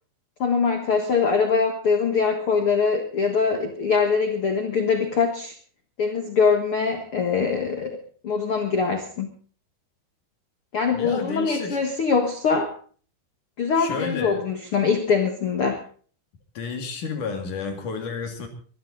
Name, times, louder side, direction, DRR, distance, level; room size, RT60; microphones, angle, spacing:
voice 1, 0.4-5.5 6.0-8.0 8.2-9.3 10.7-12.7 13.6-15.8, left 5 dB, 80° left, 5 dB, 1.2 m, -23 dB
voice 2, 10.9-11.8 13.8-14.4 16.5-18.5, left 4 dB, 50° left, 4 dB, 3.3 m, -31 dB
22.5 x 12.0 x 3.9 m, 0.43 s
omnidirectional pair, 5.1 m